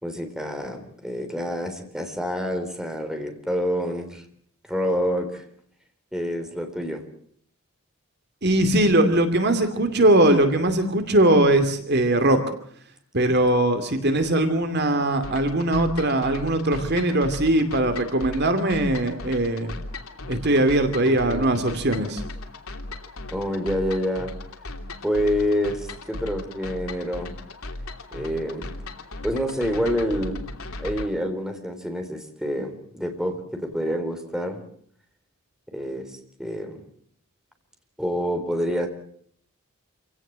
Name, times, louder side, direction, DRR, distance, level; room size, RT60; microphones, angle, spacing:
voice 1, 0.0-4.2 4.7-5.4 6.1-7.0 21.0-21.6 23.3-24.3 25.0-27.4 28.1-28.7 29.2-30.4 30.8-34.6 35.7-36.1 36.4-36.8 38.0-38.9, equal, 5° right, 5 dB, 3.7 m, -27 dB
voice 2, 8.4-12.4 13.1-19.7 20.3-22.2, right 1 dB, 50° right, 8 dB, 2.6 m, -20 dB
sound 1, 15.2-31.1, left 2 dB, 80° left, 3.1 m, -37 dB
27.5 x 17.5 x 7.6 m, 0.63 s
head